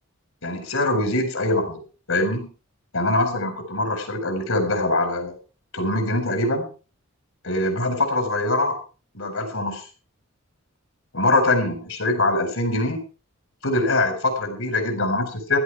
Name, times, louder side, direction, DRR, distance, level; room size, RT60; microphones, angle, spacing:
voice 1, 0.4-1.8 2.1-2.5 2.9-5.4 5.7-6.7 7.4-8.8 9.1-9.8 11.1-13.0 13.6-15.6, left 2 dB, 75° left, 6 dB, 4.5 m, -23 dB
15.5 x 12.5 x 4.8 m, 0.36 s
head